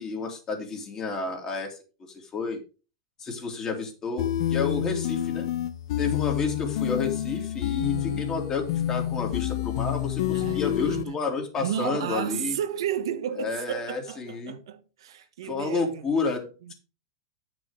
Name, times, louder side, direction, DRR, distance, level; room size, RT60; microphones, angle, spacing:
voice 1, 0.0-1.8 2.1-2.6 3.2-5.5 6.0-12.6 13.4-14.6 15.4-16.7, left 4 dB, 25° left, 2.8 m, -31 dB
sound 1, 4.2-11.0, left 12 dB, 65° left, 0.7 m, -28 dB
voice 2, 7.7-8.3 10.3-11.2 11.6-16.1 16.6-16.7, right 10 dB, 80° right, 1.2 m, -33 dB
9.7 x 6.2 x 5.1 m
supercardioid pair, 140°, 3 cm